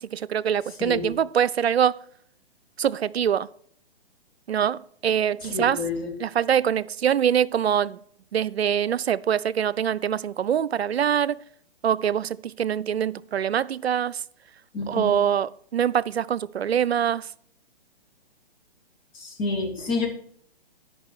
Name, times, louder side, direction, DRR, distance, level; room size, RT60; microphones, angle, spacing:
voice 1, 0.0-1.9 2.8-3.5 4.5-5.8 6.2-8.0 8.3-11.4 11.8-14.2 14.9-17.3, right 9 dB, 85° right, 0.5 m, -24 dB
voice 2, 5.4-6.1 14.7-15.2 19.1-20.1, left 3 dB, 25° left, 2.6 m, -29 dB
13.5 x 5.5 x 4.6 m
figure-of-eight pair, 130°, 31 cm